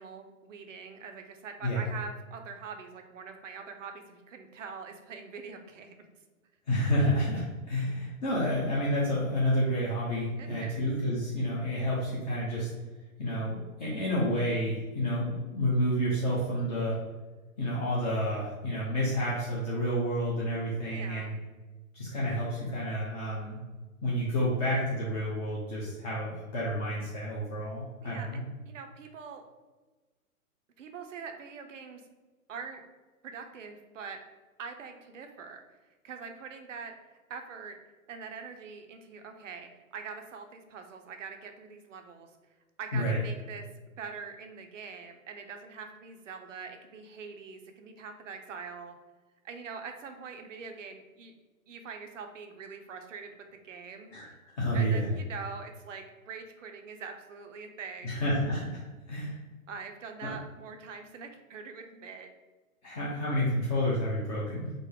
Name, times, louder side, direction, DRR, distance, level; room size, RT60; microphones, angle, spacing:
voice 1, 0.0-5.9 10.4-10.8 20.9-21.3 28.0-29.4 30.8-32.0 32.5-32.8 33.2-34.2 34.6-36.9 37.3-37.8 38.1-42.3 42.8-43.7 44.0-48.9 49.4-51.3 51.7-54.1 54.7-58.2 59.7-62.3, right 5 dB, 60° right, 5 dB, 0.6 m, -43 dB
voice 2, 6.7-12.7 13.2-17.0 17.6-21.3 21.9-23.6 24.0-28.4 42.9-43.2 54.1-54.3 54.6-55.1 58.0-58.8 59.1-59.4 60.2-60.3 62.8-64.7, equal, 30° left, -6 dB, 0.7 m, -29 dB
3.7 x 2.0 x 3.8 m, 1.2 s
figure-of-eight pair, 120°, 44 cm